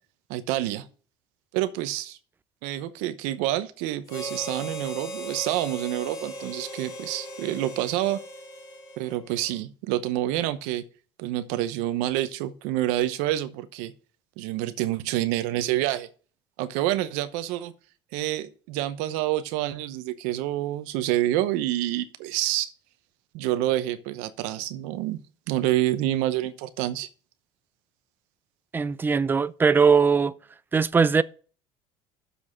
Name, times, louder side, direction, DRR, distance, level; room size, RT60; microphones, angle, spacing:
voice 1, 0.3-0.9 1.5-2.2 2.6-8.2 9.0-10.8 11.2-13.9 14.4-16.1 16.6-17.7 18.1-22.7 23.3-25.2 25.5-27.1, right 14 dB, 80° right, 0.9 m, -27 dB
Harmonica, 4.1-9.6, equal, 30° left, 3.0 m, -38 dB
voice 2, 28.7-30.3 30.7-31.2, right 5 dB, 15° right, 0.4 m, -20 dB
7.0 x 6.1 x 7.4 m
supercardioid pair, 100°, 12 cm